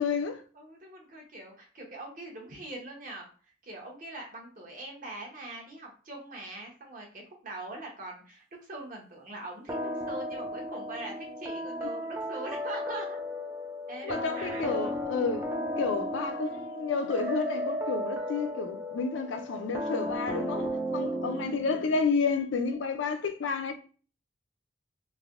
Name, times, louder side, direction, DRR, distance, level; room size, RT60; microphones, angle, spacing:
voice 1, 0.0-0.4 14.0-23.7, left 4 dB, 85° left, 0.5 m, -30 dB
voice 2, 0.5-3.3 3.6-9.7 10.1-13.2 13.9-15.0 21.0-21.4, right 2 dB, 45° right, 0.9 m, -42 dB
sound 1, 9.7-22.1, equal, 15° right, 0.3 m, -35 dB
3.3 x 2.6 x 2.4 m
head